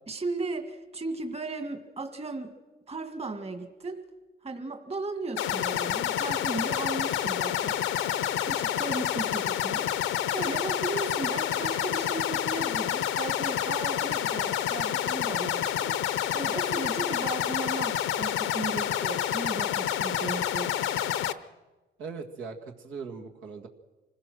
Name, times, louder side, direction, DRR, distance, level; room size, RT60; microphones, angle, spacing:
voice 1, 0.1-2.5 2.9-4.0 4.4-7.8 8.4-9.9 10.3-20.7, right 3 dB, 30° right, 6 dB, 2.0 m, -36 dB
sound 1, 5.4-21.3, left 11 dB, 80° left, 0.9 m, -28 dB
voice 2, 22.0-23.7, right 5 dB, 80° right, 1 dB, 2.0 m, -39 dB
25.5 x 16.5 x 6.3 m, 1.2 s
cardioid pair, 90°, 20 cm